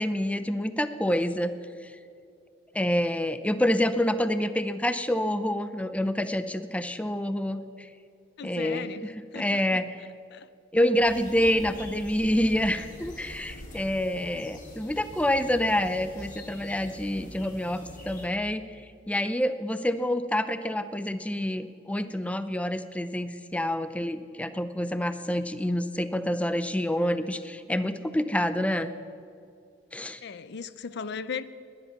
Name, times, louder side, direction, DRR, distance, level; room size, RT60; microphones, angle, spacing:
voice 1, 0.0-1.5 1.8-1.9 2.7-7.9 8.4-10.0 10.7-17.8 18.1-28.9 29.9-30.2, left 1 dB, 5° left, 11 dB, 0.6 m, -27 dB
voice 2, 8.4-9.1 9.3-9.8 10.3-10.5 30.2-31.4, left 6 dB, 60° left, 14 dB, 0.5 m, -37 dB
sound 1, 11.0-18.3, left 1 dB, 45° left, 2.7 m, -44 dB
20.0 x 11.0 x 5.9 m, 2.4 s
head